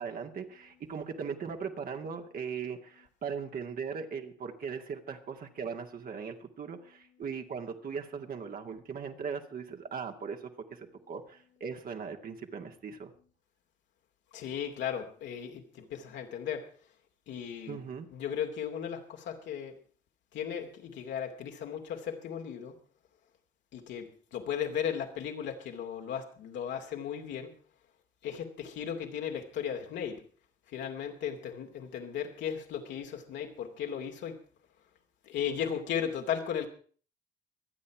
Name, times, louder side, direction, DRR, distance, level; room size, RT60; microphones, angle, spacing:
voice 1, 0.0-13.1 17.7-18.1, right 6 dB, 50° right, 2.3 m, -39 dB
voice 2, 14.3-16.7 17.3-17.8 18.1-19.7 20.3-22.8 23.7-27.6 28.2-30.2 30.7-34.4 35.3-36.7, left 8 dB, 65° left, 2.7 m, -36 dB
24.5 x 8.8 x 4.8 m
hypercardioid pair, 60°, 20 cm